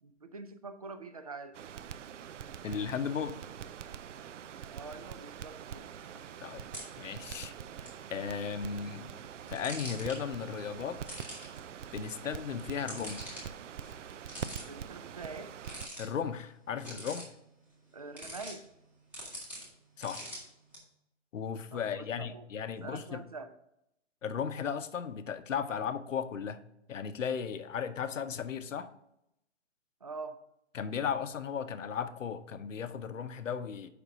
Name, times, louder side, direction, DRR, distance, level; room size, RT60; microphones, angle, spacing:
voice 1, 0.0-1.5 4.7-5.9 14.6-15.5 17.9-18.7 21.7-22.5 22.8-23.5 30.0-30.4, right 3 dB, 30° right, 10 dB, 0.4 m, -45 dB
Crackle, 1.5-15.9, right 8 dB, 75° right, 0.6 m, -44 dB
voice 2, 2.6-3.4 6.4-6.7 7.0-7.5 8.1-9.1 9.5-11.0 11.9-13.4 16.0-17.3 20.0-20.3 21.3-23.2 24.2-26.6 26.9-28.9 30.7-33.9, left 7 dB, 90° left, 11 dB, 0.8 m, -36 dB
sound 1, 6.0-20.8, equal, 5° right, 1.2 m, -48 dB
6.9 x 5.3 x 4.9 m, 0.81 s
hypercardioid pair, 170°, 37 cm